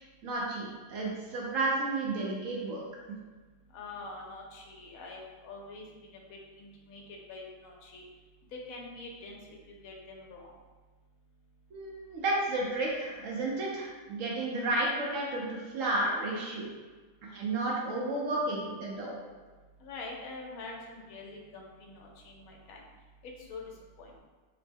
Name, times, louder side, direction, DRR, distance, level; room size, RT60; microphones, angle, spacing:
voice 1, 0.2-2.8 11.7-16.7 17.2-19.3, right 2 dB, 70° right, -3 dB, 0.9 m, -32 dB
voice 2, 3.7-5.9 6.3-7.0 7.3-8.0 8.5-10.5 19.8-22.8 23.5-23.6 24.0-24.1, left 3 dB, 75° left, -1 dB, 1.0 m, -45 dB
2.9 x 2.1 x 3.3 m, 1.3 s
omnidirectional pair, 1.6 m